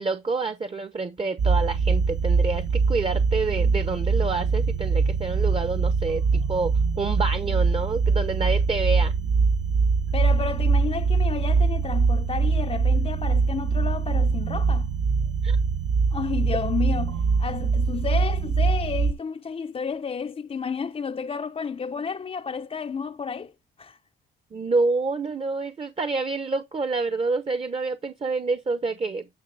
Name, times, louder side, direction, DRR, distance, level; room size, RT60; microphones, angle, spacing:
voice 1, 0.0-9.1 15.4-15.6 24.5-29.3, right 3 dB, 30° right, 0.9 m, -28 dB
sound 1, 1.4-19.1, right 4 dB, 65° right, 1.0 m, -23 dB
voice 2, 10.1-14.9 16.1-23.5 23.8-24.0, left 6 dB, 30° left, 0.5 m, -31 dB
10.5 x 4.7 x 3.9 m
cardioid pair, 90°, 20 cm